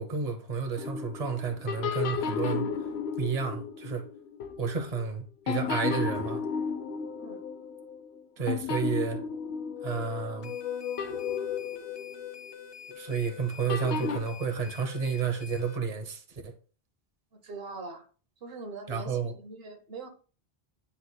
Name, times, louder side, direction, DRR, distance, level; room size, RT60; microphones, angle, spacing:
voice 1, 0.0-2.7 3.2-4.0 4.6-6.4 8.4-9.2 9.8-10.5 12.9-16.5 18.9-19.3, right 6 dB, 40° right, 1.0 m, -31 dB
sound 1, 0.8-5.1 5.5-8.2 8.5-10.5 11.0-12.6 13.7-14.2, left 6 dB, 85° left, 0.9 m, -34 dB
sound 2, 6.6-8.2 9.1-12.9, left 10 dB, 60° left, 0.9 m, -39 dB
sound 3, 10.4-15.8, left 8 dB, 30° left, 0.7 m, -47 dB
voice 2, 17.3-18.1 18.4-20.1, right 3 dB, 70° right, 1.1 m, -42 dB
9.8 x 5.7 x 2.3 m
omnidirectional pair, 1.0 m